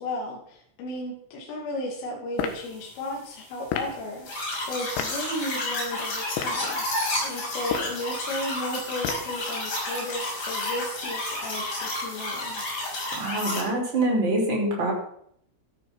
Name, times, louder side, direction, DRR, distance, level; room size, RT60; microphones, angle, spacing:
voice 1, 0.0-12.6, left 1 dB, 75° left, -2 dB, 5.2 m, -34 dB
sound 1, 2.3-2.6 3.7-4.0 5.0-5.2 6.2-6.6 7.6-8.0 9.0-9.4, left 7 dB, 90° left, 4.4 m, -31 dB
sound 2, 4.2-13.6, left 2 dB, 40° left, 7.2 m, -31 dB
voice 2, 13.2-14.9, right 1 dB, 25° right, -1 dB, 5.3 m, -25 dB
13.0 x 13.0 x 6.1 m, 0.67 s
omnidirectional pair, 5.9 m